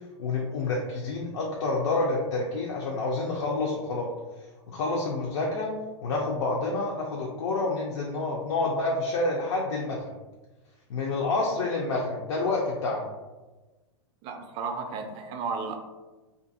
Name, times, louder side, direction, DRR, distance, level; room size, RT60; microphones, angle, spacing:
voice 1, 0.2-4.1 4.7-5.7 6.0-10.1 10.9-13.0, left 3 dB, 70° left, -2 dB, 0.5 m, -28 dB
voice 2, 14.2-15.8, right 4 dB, 35° right, 4 dB, 0.4 m, -33 dB
2.5 x 2.4 x 2.6 m, 1.2 s
hypercardioid pair, 120°, 16 cm